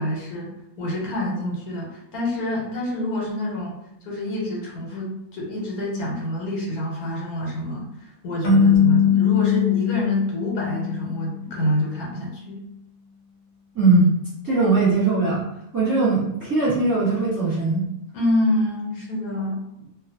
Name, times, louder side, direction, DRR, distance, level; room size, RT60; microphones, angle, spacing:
voice 1, 0.0-3.8 4.0-12.6 18.1-19.6, left 1 dB, 80° left, -3 dB, 1.3 m, -27 dB
sound 1, 8.4-11.6, left 7 dB, 45° left, 0.6 m, -20 dB
voice 2, 13.7-14.1 14.4-15.4 15.7-17.8, right 3 dB, 15° right, -9 dB, 1.0 m, -20 dB
2.4 x 2.3 x 2.7 m, 0.82 s
omnidirectional pair, 1.5 m